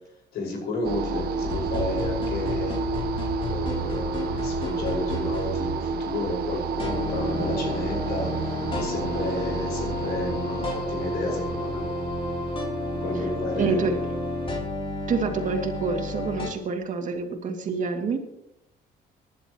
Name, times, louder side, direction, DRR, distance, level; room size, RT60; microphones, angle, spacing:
voice 1, 0.3-2.8 3.5-11.8 13.0-13.8, left 2 dB, 70° left, 0 dB, 5.6 m, -32 dB
sound 1, 0.8-15.0, right 4 dB, 65° right, 1.2 m, -31 dB
sound 2, 1.4-5.7 6.8-16.5, left 2 dB, 30° left, 3.5 m, -31 dB
voice 2, 13.6-14.0 15.1-18.2, right 5 dB, 50° right, 4 dB, 2.5 m, -27 dB
25.0 x 11.0 x 3.1 m, 0.79 s
cardioid pair, 110°, 17 cm